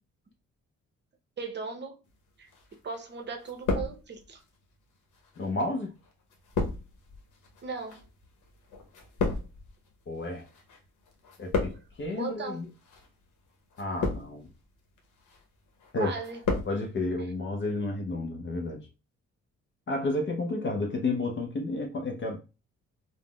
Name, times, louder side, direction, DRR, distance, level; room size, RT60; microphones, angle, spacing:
voice 1, 1.4-2.0 2.4-2.5 2.8-4.4 7.6-8.0 12.1-12.6 16.0-16.4, right 5 dB, 35° right, 0.7 m, -37 dB
sound 1, 2.5-3.1 3.4-4.4 5.1-10.8 11.1-12.1 12.8-13.1 13.7-14.5 15.0-15.4 15.8-16.8 17.0-17.1, left 3 dB, 85° left, 0.8 m, -33 dB
voice 2, 5.4-5.9 10.1-10.5 11.4-12.7 13.8-14.5 15.9-16.1 16.7-18.9 19.9-22.4, left 2 dB, 40° left, 0.6 m, -31 dB
3.5 x 2.1 x 2.2 m
cardioid pair, 90°, 30 cm